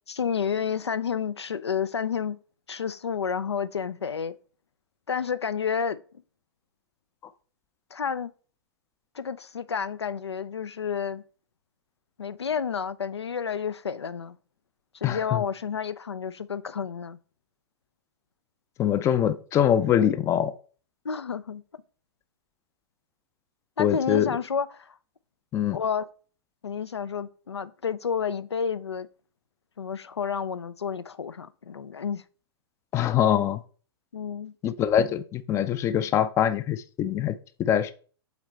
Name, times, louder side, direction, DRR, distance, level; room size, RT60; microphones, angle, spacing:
voice 1, 0.1-2.4 2.7-4.4 5.1-6.0 7.9-8.3 9.1-11.2 12.2-14.4 14.9-17.2 21.0-21.6 23.8-25.0 25.7-26.1 26.6-29.1 29.8-32.2 34.1-34.5, left 7 dB, 90° left, 0.4 m, -30 dB
voice 2, 15.0-15.4 18.8-20.5 23.8-24.3 25.5-25.8 32.9-33.6 34.6-37.9, left 10 dB, 20° left, 0.4 m, -24 dB
8.1 x 3.9 x 3.2 m
figure-of-eight pair, 110°, 14 cm